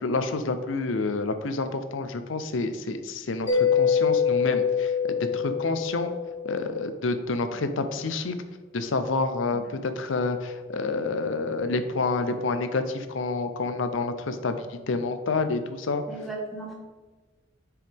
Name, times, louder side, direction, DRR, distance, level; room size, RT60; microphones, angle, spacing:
voice 1, 0.0-6.1 6.4-8.3 8.7-16.0, left 3 dB, 80° left, 9 dB, 0.6 m, -28 dB
Mallet percussion, 3.5-6.9, left 6 dB, 30° left, 1.2 m, -25 dB
voice 2, 16.1-16.7, right 3 dB, ahead, -5 dB, 1.6 m, -37 dB
7.8 x 4.7 x 3.5 m, 1.3 s
head